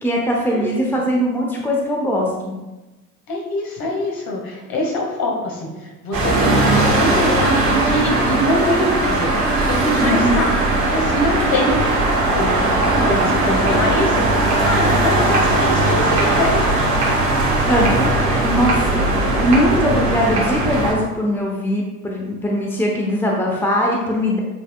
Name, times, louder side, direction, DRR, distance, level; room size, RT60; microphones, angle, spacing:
voice 1, 0.0-2.5 10.0-10.4 17.7-18.1 18.4-24.4, equal, 5° left, -1 dB, 0.9 m, -20 dB
voice 2, 3.3-9.3 9.7-10.5 10.9-11.9 12.3-12.5 13.0-16.7, left 1 dB, 50° left, -2 dB, 2.2 m, -23 dB
sound 1, 6.1-20.9, right 2 dB, 80° right, 1.6 m, -18 dB
8.2 x 5.3 x 2.4 m, 1.1 s
figure-of-eight pair, 60°, 47 cm